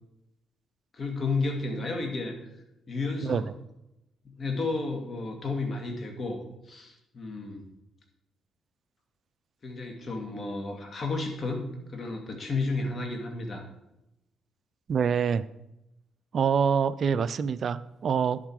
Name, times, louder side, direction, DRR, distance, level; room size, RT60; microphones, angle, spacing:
voice 1, 0.9-2.3 2.9-3.5 4.2-7.7 9.6-13.7, left 3 dB, 40° left, 3 dB, 2.3 m, -32 dB
voice 2, 14.9-15.5 16.3-18.4, right 6 dB, 55° right, 15 dB, 0.4 m, -25 dB
11.0 x 7.3 x 4.8 m, 0.89 s
cardioid pair, 90°, 0 cm